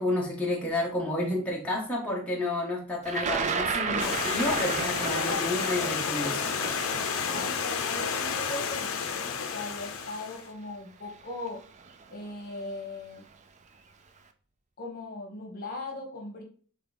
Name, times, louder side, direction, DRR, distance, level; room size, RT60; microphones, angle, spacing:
voice 1, 0.0-6.6, left 1 dB, 5° left, -4 dB, 0.9 m, -30 dB
Thunder, 3.1-9.1 10.0-10.1 11.2-11.5 11.8-12.3, right 5 dB, 35° right, 0.4 m, -33 dB
Stream, 4.0-10.5, left 6 dB, 65° left, 0.6 m, -31 dB
voice 2, 7.2-11.6 12.1-13.2 14.8-16.4, left 2 dB, 45° left, 1 dB, 1.1 m, -39 dB
3.8 x 3.3 x 3.9 m, 0.42 s
head